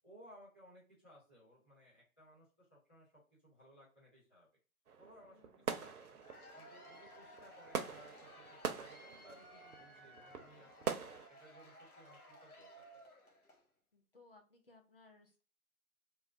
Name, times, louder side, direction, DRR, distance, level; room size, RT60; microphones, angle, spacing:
voice 1, 0.0-3.1 3.4-4.5 5.0-5.4 5.7-6.2 6.5-11.0 11.3-13.0, equal, 10° left, -14 dB, 0.8 m, -61 dB
sound 1, 4.9-11.3, right 6 dB, 80° right, 0.6 m, -44 dB
voice 2, 5.3-5.7 13.9-15.4, left 3 dB, 40° left, 3 dB, 0.6 m, -64 dB
Cheering / Applause / Crowd, 6.0-13.7, equal, 80° left, 1.1 m, -58 dB
3.1 x 2.1 x 2.4 m, 0.37 s
figure-of-eight pair, 165°, 44 cm